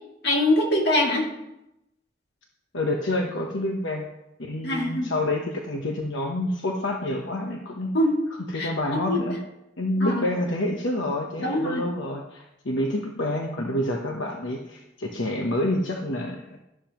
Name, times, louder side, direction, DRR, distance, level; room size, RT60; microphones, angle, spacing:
voice 1, 0.2-1.3 4.6-5.1 7.9-8.3 8.5-8.7 9.1-9.2 10.0-10.2 11.4-11.8, left 1 dB, 60° left, -1 dB, 2.7 m, -23 dB
voice 2, 2.7-4.1 4.4-7.9 8.5-9.4 9.8-16.4, left 1 dB, 80° left, 1 dB, 1.1 m, -28 dB
12.5 x 12.0 x 3.1 m, 0.90 s
head